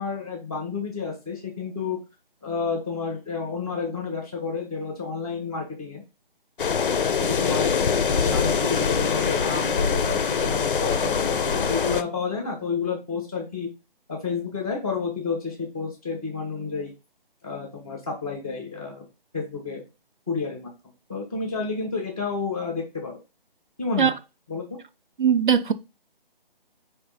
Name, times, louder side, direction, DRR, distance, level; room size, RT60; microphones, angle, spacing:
voice 1, 0.0-2.0 2.4-6.0 7.2-7.7 8.1-13.7 14.1-16.9 17.4-19.0 19.3-19.8 20.3-20.7 21.1-23.2 23.8-24.1 24.5-24.6, left 5 dB, 5° right, 0.5 m, -30 dB
sound 1, 6.6-12.0, left 6 dB, 60° left, 0.5 m, -23 dB
voice 2, 25.2-25.7, right 7 dB, 55° right, 0.5 m, -19 dB
5.2 x 2.5 x 3.9 m
figure-of-eight pair, 150°, 29 cm